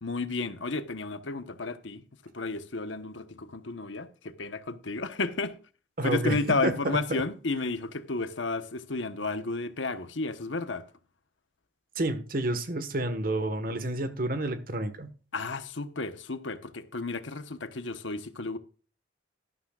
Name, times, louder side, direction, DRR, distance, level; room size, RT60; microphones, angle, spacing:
voice 1, 0.0-5.5 6.0-10.8 15.3-18.6, left 3 dB, 85° left, 1.1 m, -32 dB
voice 2, 6.0-6.7 11.9-15.1, right 1 dB, 50° right, 1.4 m, -29 dB
12.5 x 12.0 x 2.4 m
head